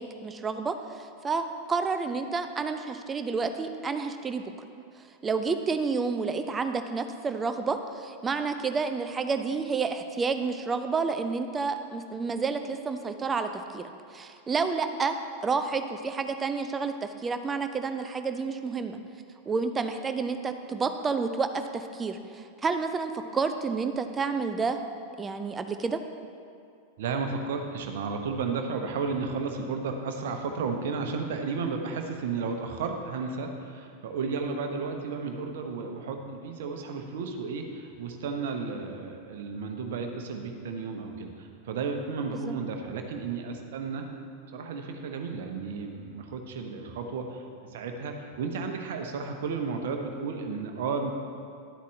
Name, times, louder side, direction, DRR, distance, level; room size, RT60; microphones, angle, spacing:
voice 1, 0.0-4.5 5.2-13.8 14.1-15.1 15.4-19.0 19.5-24.8 25.2-26.0 42.4-42.5, right 4 dB, 20° right, 8 dB, 0.5 m, -30 dB
voice 2, 27.0-44.1 44.5-47.4 47.7-51.1, right 4 dB, 55° right, 4 dB, 0.9 m, -33 dB
11.5 x 8.2 x 3.2 m, 2.4 s
figure-of-eight pair, 90°, 0 cm